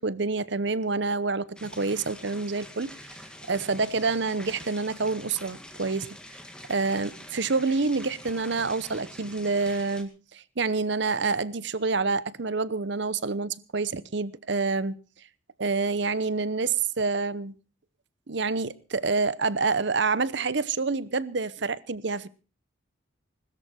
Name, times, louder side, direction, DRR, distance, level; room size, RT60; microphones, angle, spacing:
voice 1, 0.0-6.1 6.7-14.9 15.6-17.5 18.3-22.3, right 4 dB, 60° right, 0.8 m, -27 dB
sound 1, 1.6-10.0, left 1 dB, 5° left, 2.0 m, -45 dB
21.0 x 13.5 x 4.3 m
head